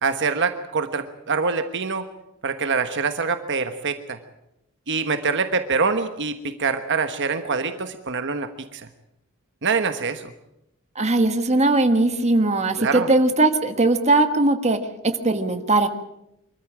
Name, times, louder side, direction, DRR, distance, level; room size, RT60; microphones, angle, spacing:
voice 1, 0.0-2.0 2.4-4.2 4.9-8.8 9.6-10.2 12.8-13.1, right 4 dB, 55° right, 8 dB, 1.3 m, -25 dB
voice 2, 10.9-15.9, right 2 dB, 30° right, 7 dB, 1.6 m, -20 dB
24.5 x 14.0 x 8.7 m, 0.85 s
head